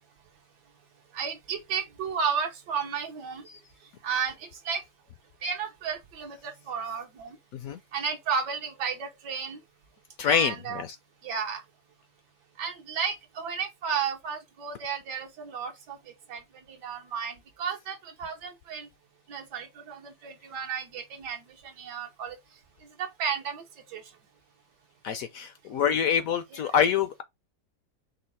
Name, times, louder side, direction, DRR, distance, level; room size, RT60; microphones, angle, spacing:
voice 1, 1.1-3.5 4.0-4.8 5.4-7.4 7.9-9.6 10.2-10.8 11.2-11.6 12.6-16.0 16.3-16.4 16.7-18.9 19.3-22.4 23.0-23.6 23.9-24.0 26.5-26.6, right 6 dB, 80° right, 1.5 m, -33 dB
voice 2, 10.2-11.0 25.0-27.2, left 8 dB, 70° left, 0.8 m, -26 dB
5.3 x 2.0 x 4.0 m
omnidirectional pair, 1.9 m